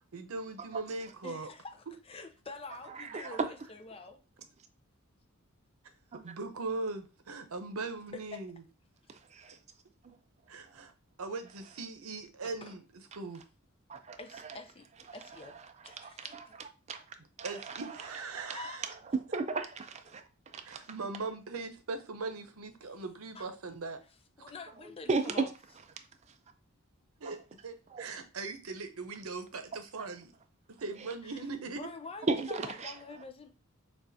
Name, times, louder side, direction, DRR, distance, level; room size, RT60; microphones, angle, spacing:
voice 1, 0.1-1.5 3.1-3.4 6.2-8.6 10.5-10.9 11.2-12.8 13.1-13.4 17.4-18.8 20.6-24.0 27.2-30.3 30.8-31.8, right 3 dB, 90° right, 0.7 m, -40 dB
voice 2, 1.2-4.2 8.1-8.4 12.4-12.8 14.2-15.6 15.8-16.6 18.5-18.8 23.3-23.5 24.4-25.5 31.2-31.4 31.7-33.5, left 3 dB, 25° left, 0.5 m, -46 dB
voice 3, 3.0-3.3 6.1-6.2 9.3-9.6 10.0-10.2 13.9-14.2 16.0-17.0 17.4-17.8 18.3-18.6 19.1-20.2 20.5-20.8 25.1-25.5 27.2-27.3 27.9-28.1 32.3-32.9, right 3 dB, 30° right, 0.4 m, -35 dB
6.3 x 2.4 x 2.6 m
head